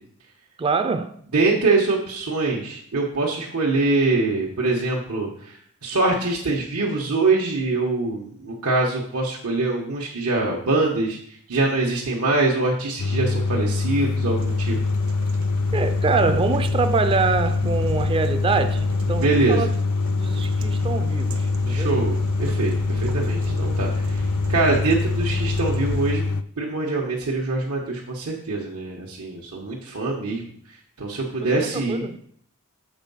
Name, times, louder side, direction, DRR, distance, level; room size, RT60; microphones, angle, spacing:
voice 1, 0.6-1.2 15.7-19.7 20.1-22.0 31.3-32.2, right 4 dB, 25° right, 0.3 m, -25 dB
voice 2, 1.3-5.5 5.8-11.2 11.5-14.8 19.2-19.7 21.7-24.2 24.5-26.2 26.6-30.4 31.0-32.0, right 3 dB, 90° right, 1.2 m, -24 dB
sound 1, 13.0-26.4, left 3 dB, 75° left, 0.4 m, -24 dB
sound 2, 14.4-26.1, right 1 dB, 65° right, 0.8 m, -36 dB
7.3 x 4.5 x 5.5 m
head